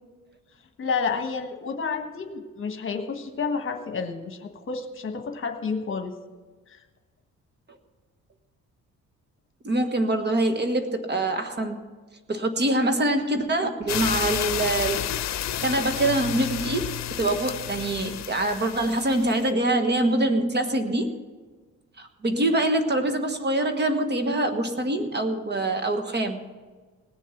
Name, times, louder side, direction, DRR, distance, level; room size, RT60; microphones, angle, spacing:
voice 1, 0.8-6.1 6.7-6.8, left 5 dB, 40° left, 6 dB, 1.4 m, -30 dB
voice 2, 9.6-11.8 12.3-15.0 15.6-16.9 17.2-21.2 22.0-26.4, right 1 dB, 35° right, 7 dB, 1.4 m, -24 dB
sound 1, 13.9-19.5, left 11 dB, 60° left, 0.7 m, -31 dB
19.0 x 7.2 x 6.0 m, 1.4 s
cardioid pair, 90°, 30 cm